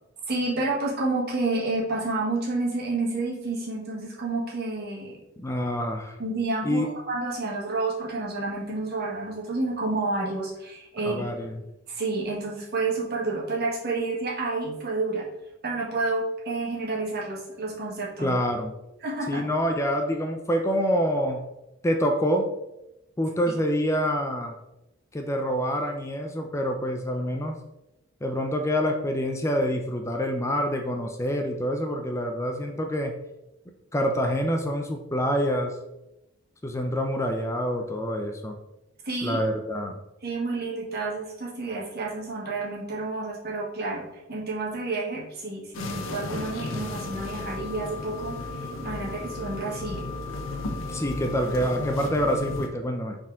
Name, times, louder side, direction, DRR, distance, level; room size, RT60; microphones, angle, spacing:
voice 1, 0.3-5.2 6.2-11.2 11.9-15.3 15.6-18.3 19.0-19.5 39.0-39.4 40.2-50.0, right 3 dB, 50° right, -4 dB, 1.7 m, -30 dB
voice 2, 5.4-6.2 6.6-6.9 11.1-11.6 18.2-18.7 19.3-21.4 21.8-22.5 23.2-24.6 25.1-27.6 28.2-33.1 33.9-35.8 36.6-38.6 39.2-40.0 50.9-53.2, equal, 15° left, 3 dB, 0.5 m, -26 dB
sound 1, 45.7-52.7, left 2 dB, 70° left, 0.9 m, -34 dB
6.2 x 4.3 x 3.6 m, 0.91 s
head